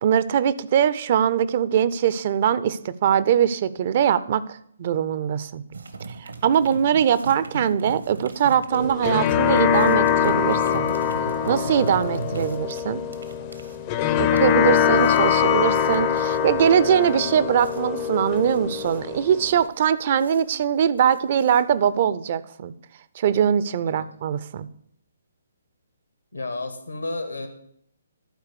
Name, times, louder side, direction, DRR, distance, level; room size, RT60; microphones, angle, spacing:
voice 1, 0.0-4.4 4.8-5.6 6.2-10.9 11.5-13.0 14.2-22.7 23.2-24.7, right 9 dB, 40° right, 16 dB, 0.5 m, -22 dB
sound 1, 5.7-22.0, right 4 dB, 75° right, 1.0 m, -38 dB
sound 2, 8.7-19.7, left 8 dB, 30° left, 0.5 m, -23 dB
voice 2, 26.3-27.5, left 2 dB, 85° left, 8 dB, 1.7 m, -32 dB
11.5 x 4.6 x 6.7 m, 0.67 s
figure-of-eight pair, 135°, 0 cm